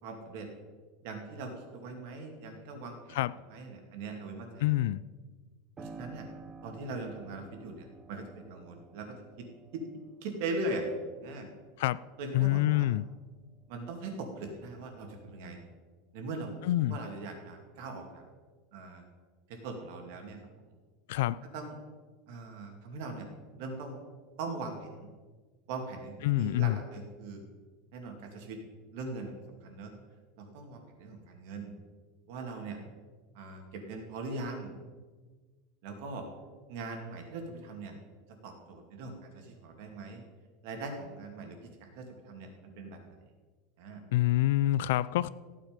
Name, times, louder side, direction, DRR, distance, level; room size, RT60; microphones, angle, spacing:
voice 1, 0.0-0.5 1.0-3.2 3.5-4.7 5.8-6.3 6.6-9.5 9.7-9.8 10.2-10.8 11.2-11.5 12.2-12.9 13.7-15.6 16.1-16.5 16.9-18.2 18.7-19.0 19.5-20.4 21.5-21.8 22.3-23.3 23.6-24.0 24.4-25.1 25.7-27.4 27.9-28.6 28.9-29.9 30.4-31.7 32.3-32.8 33.3-34.7 35.8-36.2 36.7-37.9 38.4-40.2 40.6-42.5 42.8-43.1 43.8-44.0, right 3 dB, 50° right, 2.4 m, -40 dB
voice 2, 4.6-5.0 11.8-12.0 12.3-13.0 16.6-17.0 21.1-21.4 26.2-26.8 44.1-45.3, left 15 dB, 60° left, 0.4 m, -26 dB
Piano, 5.8-14.2 14.6-15.7, right 4 dB, 15° right, 0.6 m, -53 dB
15.0 x 9.2 x 5.2 m
supercardioid pair, 180°, 0 cm